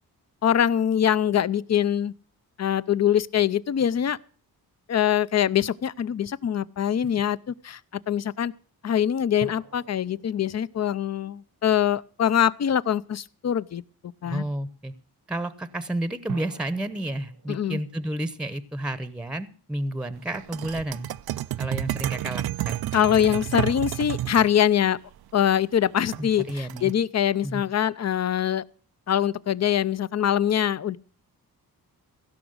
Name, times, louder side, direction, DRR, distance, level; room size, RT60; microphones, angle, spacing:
voice 1, 0.4-2.1 2.6-4.2 4.9-7.8 8.1-8.5 8.8-13.8 14.2-14.5 17.5-17.8 22.9-25.0 25.3-28.6 29.1-31.0, left 9 dB, 45° left, 0.6 m, -23 dB
sound 1, 9.4-12.2 16.3-19.5, right 6 dB, 60° right, 1.0 m, -45 dB
voice 2, 14.2-14.9 15.3-21.1 21.6-22.8 26.2-26.9 27.4-27.6, right 1 dB, 5° right, 0.8 m, -31 dB
sound 2, 20.3-24.5 26.1-26.9, right 14 dB, 75° right, 0.5 m, -31 dB
16.0 x 6.0 x 7.9 m
cardioid pair, 100°, 37 cm